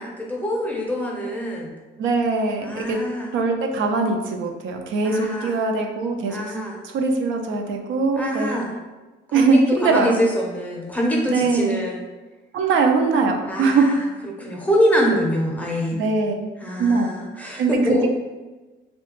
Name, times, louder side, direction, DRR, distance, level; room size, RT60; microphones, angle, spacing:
voice 1, 0.0-1.7 2.6-3.3 5.0-5.6 6.3-6.8 8.1-8.7 9.3-12.0 13.4-16.0 16.6-18.1, equal, 5° left, -2 dB, 0.6 m, -25 dB
voice 2, 2.0-3.0 3.3-6.4 6.8-8.6 9.3-10.2 11.3-11.8 12.5-13.9 15.9-16.3 16.8-17.1 17.6-18.1, right 4 dB, 75° right, 3 dB, 0.4 m, -21 dB
2.7 x 2.2 x 2.9 m, 1.2 s
cardioid pair, 90°, 20 cm